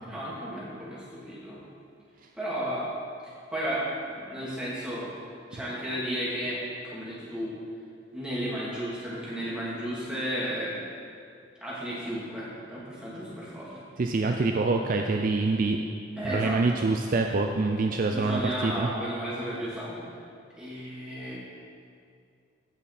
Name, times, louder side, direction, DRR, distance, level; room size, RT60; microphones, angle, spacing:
voice 1, 0.0-1.6 2.3-2.9 3.2-5.1 5.5-7.5 8.1-10.7 11.6-13.8 16.2-16.6 18.1-20.2 20.6-21.4, equal, 5° right, -9 dB, 2.7 m, -33 dB
voice 2, 14.0-15.8 16.3-18.9, right 3 dB, 45° right, 3 dB, 0.4 m, -25 dB
16.0 x 5.8 x 4.2 m, 2.3 s
head